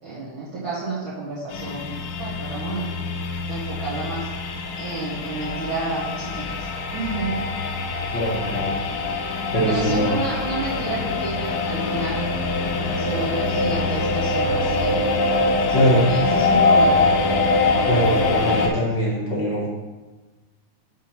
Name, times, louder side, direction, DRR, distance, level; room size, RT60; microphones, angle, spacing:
voice 1, 0.0-2.9 3.5-4.3 4.8-6.7 6.9-7.5 9.7-12.2 13.0-17.0 17.4-17.5, right 3 dB, 55° right, -10 dB, 1.7 m, -30 dB
sound 1, 1.5-18.7, left 3 dB, 75° left, 1.5 m, -23 dB
voice 2, 8.1-8.7 9.5-10.1 15.7-16.1 17.9-19.7, equal, 50° left, -5 dB, 1.4 m, -22 dB
5.9 x 3.6 x 5.7 m, 1.2 s
omnidirectional pair, 3.5 m